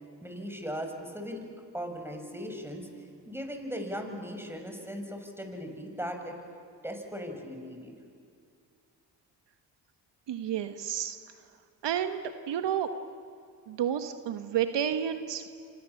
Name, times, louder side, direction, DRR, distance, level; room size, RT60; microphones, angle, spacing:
voice 1, 0.2-1.4 1.7-2.9 3.2-6.3 6.8-7.9, equal, 5° right, 4 dB, 6.8 m, -38 dB
voice 2, 10.3-11.2 11.8-12.9 13.7-15.5, right 9 dB, 65° right, 8 dB, 1.5 m, -30 dB
28.5 x 25.5 x 7.2 m, 2.4 s
supercardioid pair, 55°, 45 cm